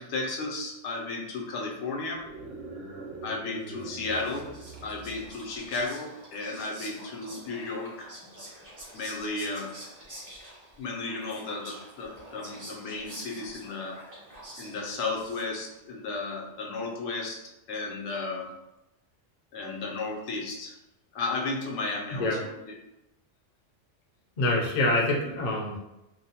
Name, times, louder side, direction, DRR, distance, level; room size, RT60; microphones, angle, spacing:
voice 1, 0.0-2.3 3.2-4.5 4.8-8.1 8.9-9.7 10.8-14.0 14.6-17.4 17.7-18.5 19.5-20.8 21.1-22.4 22.6-22.7, left 3 dB, 80° left, -1 dB, 0.9 m, -34 dB
sound 1, 2.1-5.7, right 3 dB, 60° right, 0.8 m, -43 dB
Whispering, 3.8-15.8, right 1 dB, 25° right, 0.5 m, -47 dB
voice 2, 24.4-25.8, left 2 dB, 55° left, -1 dB, 0.5 m, -25 dB
2.5 x 2.0 x 2.7 m, 0.92 s
omnidirectional pair, 1.3 m